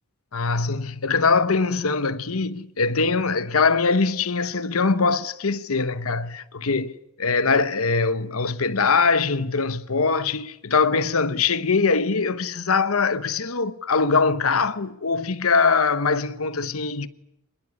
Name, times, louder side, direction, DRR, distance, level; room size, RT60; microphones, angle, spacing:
voice 1, 0.3-17.1, left 4 dB, 85° left, 1.0 m, -22 dB
25.5 x 21.0 x 9.7 m
head